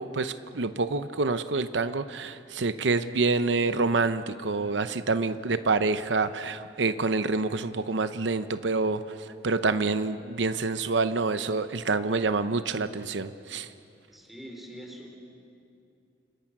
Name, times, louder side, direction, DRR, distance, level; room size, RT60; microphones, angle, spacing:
voice 1, 0.0-9.0 9.4-13.7, right 3 dB, 90° right, 11 dB, 0.8 m, -27 dB
voice 2, 14.1-15.1, equal, ahead, 1 dB, 4.1 m, -43 dB
29.0 x 26.5 x 6.1 m, 2.6 s
head